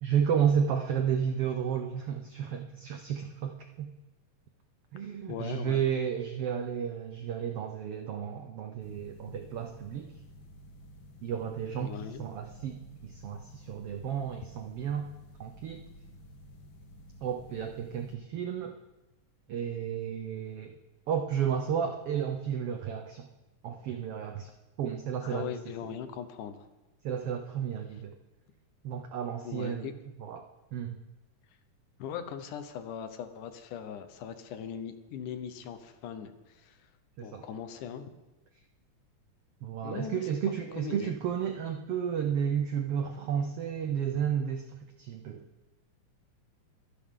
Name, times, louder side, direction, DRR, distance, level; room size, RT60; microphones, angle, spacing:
voice 1, 0.0-3.9 4.9-10.1 11.2-15.1 15.4-15.8 17.2-18.8 19.5-20.7 21.1-23.3 23.6-24.5 24.8-25.5 27.0-28.2 28.8-29.9 30.2-31.0 37.2-37.4 39.6-45.5, right 8 dB, 85° right, 5 dB, 1.3 m, -32 dB
voice 2, 5.3-5.9 11.8-12.2 25.2-26.7 29.4-29.9 32.0-36.9 37.2-38.1 39.8-40.3 40.8-41.1, left 8 dB, 75° left, 9 dB, 2.5 m, -40 dB
sound 1, 8.8-18.1, equal, 55° left, 1.5 m, -52 dB
24.0 x 10.5 x 3.8 m, 1.0 s
omnidirectional pair, 3.7 m